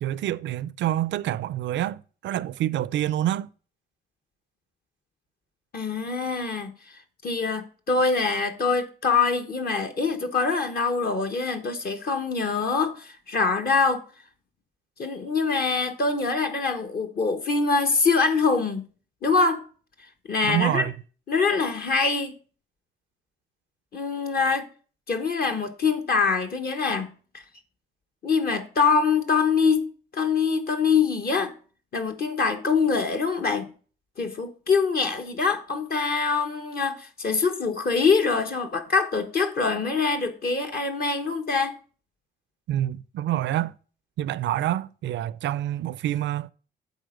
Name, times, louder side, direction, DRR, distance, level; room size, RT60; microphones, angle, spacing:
voice 1, 0.0-3.5 20.4-20.9 42.7-43.7 44.2-46.5, right 12 dB, 65° right, 0.4 m, -27 dB
voice 2, 5.7-6.7 7.2-14.0 15.0-18.8 19.2-19.6 20.3-20.9 21.3-22.4 23.9-24.7 25.1-27.1 27.3-27.4 28.2-31.5 31.9-33.7 34.2-41.8, left 4 dB, 50° left, 1.1 m, -24 dB
8.0 x 4.4 x 6.4 m
cardioid pair, 90°, 20 cm